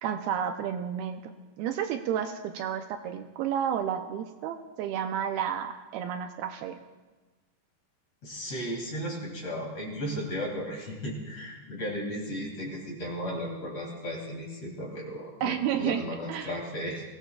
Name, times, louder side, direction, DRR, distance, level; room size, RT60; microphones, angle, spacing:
voice 1, 0.0-1.2 1.6-6.8 15.4-16.0 16.3-16.5, right 9 dB, 80° right, 6 dB, 2.4 m, -31 dB
voice 2, 8.2-17.0, equal, 45° left, -1 dB, 3.1 m, -35 dB
22.0 x 17.0 x 2.3 m, 1.2 s
omnidirectional pair, 4.7 m